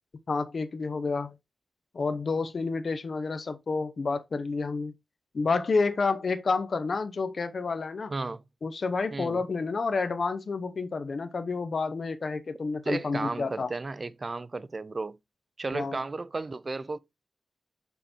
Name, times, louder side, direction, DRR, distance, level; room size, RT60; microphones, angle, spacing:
voice 1, 0.3-1.3 1.9-4.9 5.3-8.1 8.6-13.7 15.7-16.0, left 4 dB, 55° left, 0.7 m, -29 dB
voice 2, 8.1-8.4 9.1-9.4 12.8-15.2 15.6-17.0, right 3 dB, 35° right, 0.4 m, -34 dB
5.5 x 4.2 x 4.3 m
wide cardioid pair, 100°, 0 cm